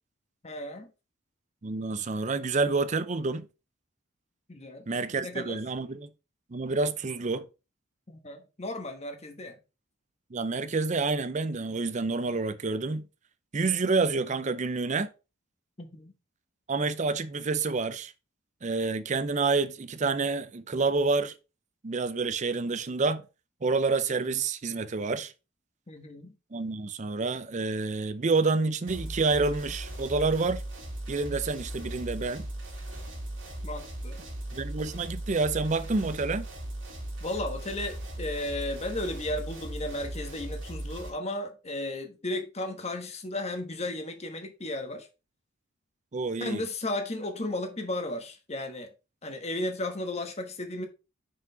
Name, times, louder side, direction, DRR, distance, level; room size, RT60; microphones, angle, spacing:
voice 1, 0.4-0.9 4.5-4.9 5.2-5.6 8.1-9.6 15.8-16.1 25.9-26.3 33.6-34.2 37.2-45.1 46.4-48.9 49.2-50.9, left 1 dB, 35° left, 1.2 m, -34 dB
voice 2, 1.6-3.5 4.9-6.1 6.5-7.5 10.3-13.0 13.5-15.1 16.7-18.1 18.6-21.3 21.8-23.2 23.6-25.3 26.5-30.6 31.1-32.5 34.5-36.5 46.1-46.6, right 3 dB, 35° right, 0.5 m, -28 dB
sound 1, 28.9-41.1, right 1 dB, 75° right, 2.3 m, -38 dB
5.8 x 4.9 x 3.9 m
head